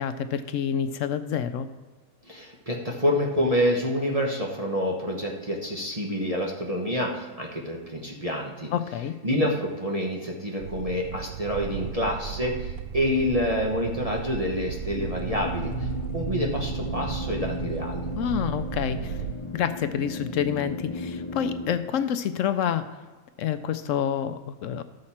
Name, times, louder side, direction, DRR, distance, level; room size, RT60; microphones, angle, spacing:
voice 1, 0.0-1.7 8.7-9.1 18.1-19.2 19.5-22.9 23.4-24.8, left 8 dB, 70° left, 11 dB, 0.8 m, -28 dB
voice 2, 2.3-8.7 9.2-15.9 16.1-18.1, equal, 25° right, -1 dB, 1.1 m, -27 dB
sound 1, 10.6-19.4, right 8 dB, 70° right, 1.0 m, -35 dB
sound 2, 14.8-21.8, left 3 dB, 45° left, 0.3 m, -35 dB
13.5 x 6.5 x 4.3 m, 1.4 s
omnidirectional pair, 1.6 m